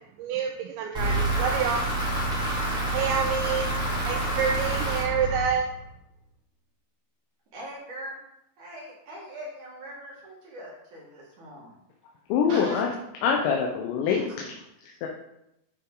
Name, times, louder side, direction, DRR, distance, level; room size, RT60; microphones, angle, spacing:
voice 1, 0.2-1.8 2.9-3.7 4.1-5.7, right 7 dB, 80° right, 3 dB, 2.7 m, -27 dB
sound 1, 0.9-5.9, right 1 dB, ahead, 1.9 m, -28 dB
voice 2, 7.5-8.2 8.6-11.8 12.5-12.9 14.0-14.2, right 1 dB, 55° right, -4 dB, 2.4 m, -40 dB
voice 3, 12.3-12.9 13.2-14.5 14.8-15.1, left 6 dB, 75° left, 0 dB, 3.0 m, -25 dB
11.5 x 5.1 x 3.9 m, 0.83 s
omnidirectional pair, 5.5 m